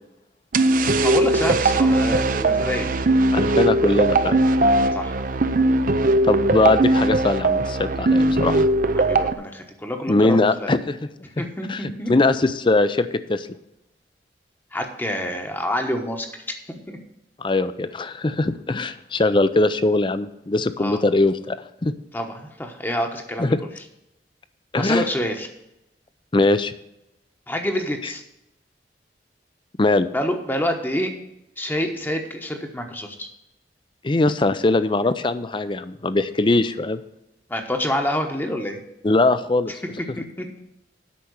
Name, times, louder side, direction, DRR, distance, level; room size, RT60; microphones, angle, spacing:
sound 1, 0.5-9.3, right 2 dB, 50° right, 0.6 m, -19 dB
voice 1, 0.8-2.9 4.9-5.1 9.0-10.7 11.4-12.1 14.7-16.6 16.9-17.0 20.8-21.0 22.1-23.5 24.7-25.5 27.5-28.2 30.1-31.1 31.6-33.3 37.5-38.8 40.2-40.6, equal, 10° left, 4 dB, 1.0 m, -27 dB
voice 2, 3.3-4.5 6.3-8.6 10.1-11.0 11.7-13.5 17.4-21.6 21.8-21.9 23.4-23.6 24.7-25.0 26.3-26.7 28.0-28.1 29.8-30.1 34.0-37.0 39.0-39.7, left 2 dB, 30° left, 13 dB, 0.5 m, -21 dB
8.5 x 5.8 x 8.0 m, 0.85 s
head